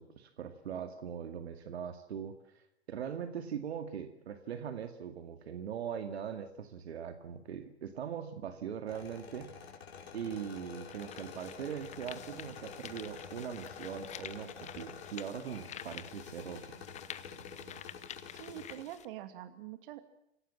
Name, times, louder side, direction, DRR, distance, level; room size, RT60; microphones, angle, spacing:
voice 1, 0.0-9.5 10.1-16.8, right 8 dB, 70° right, 8 dB, 2.2 m, -41 dB
sound 1, 8.9-18.8, left 6 dB, 65° left, 5.0 m, -49 dB
sound 2, 9.8-9.9 10.6-19.0, left 11 dB, 20° left, 0.9 m, -49 dB
voice 2, 18.2-20.0, right 12 dB, 50° right, 10 dB, 2.5 m, -45 dB
27.5 x 17.0 x 7.4 m, 0.79 s
hypercardioid pair, 110°, 33 cm